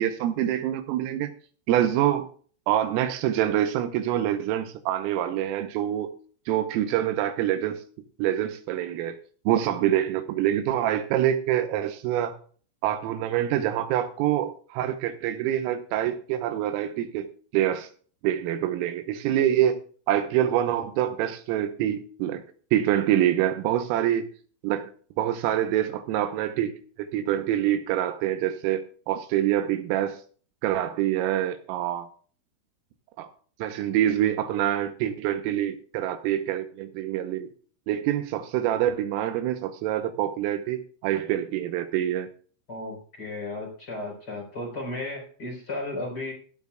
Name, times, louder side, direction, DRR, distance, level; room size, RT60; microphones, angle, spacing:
voice 1, 0.0-1.3 1.7-2.3 2.7-6.1 6.5-7.8 8.2-9.2 9.5-12.4 12.8-17.3 17.5-17.9 18.2-19.8 20.1-22.4 22.7-24.3 24.6-24.9 25.2-26.7 27.0-30.2 30.6-32.1 33.2-33.3 33.6-37.5 37.9-42.3, right 11 dB, 85° right, 3.5 m, -26 dB
voice 2, 42.7-46.3, left 2 dB, 20° left, 4.4 m, -34 dB
17.0 x 12.0 x 2.4 m
omnidirectional pair, 6.0 m